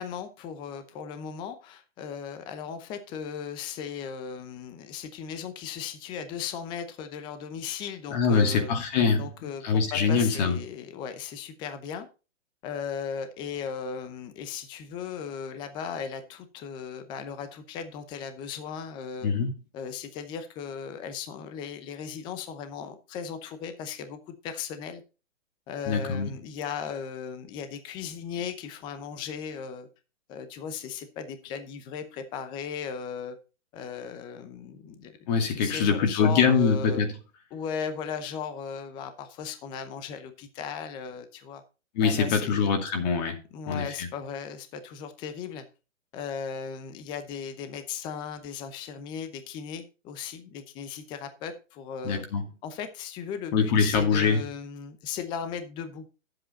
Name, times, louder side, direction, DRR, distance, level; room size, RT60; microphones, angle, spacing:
voice 1, 0.0-8.7 9.2-12.1 12.6-19.3 19.7-25.0 25.7-29.9 30.3-33.4 33.7-37.0 37.5-41.6 42.0-42.7 43.5-45.6 46.1-52.3 52.6-56.0, left 7 dB, 10° left, 0.7 m, -37 dB
voice 2, 8.1-9.3 9.6-10.6 19.2-19.5 25.9-26.3 35.3-37.1 41.9-43.4 43.7-44.1 52.0-52.5 53.5-54.4, left 5 dB, 35° left, 2.3 m, -24 dB
11.0 x 7.8 x 4.1 m
hypercardioid pair, 155°, 38 cm